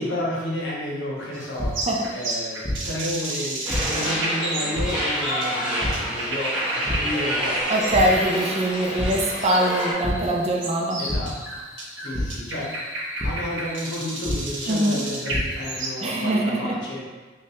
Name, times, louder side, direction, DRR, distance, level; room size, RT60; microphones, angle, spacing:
voice 1, 0.0-1.9 2.1-7.6 11.0-11.4 12.0-12.9 13.2-17.0, left 1 dB, 70° left, -4 dB, 0.9 m, -31 dB
sound 1, 1.3-16.3, right 1 dB, 80° right, 0.8 m, -32 dB
sound 2, 1.6-1.7 2.6-2.7 3.7-3.8 4.7-4.8 5.8-5.9 6.8-6.9 7.4-7.6 7.9-8.0 9.0-9.1 10.0-10.1 11.1-11.2 12.1-12.2 13.2-13.3 14.2-14.3 15.0-15.4, left 1 dB, 20° left, 0.7 m, -27 dB
sound 3, 3.7-9.9, equal, 5° right, 0.8 m, -28 dB
voice 2, 7.7-11.0 14.7-15.0 16.0-16.7, right 1 dB, 35° right, -1 dB, 0.5 m, -23 dB
3.4 x 3.1 x 2.9 m, 1.3 s
head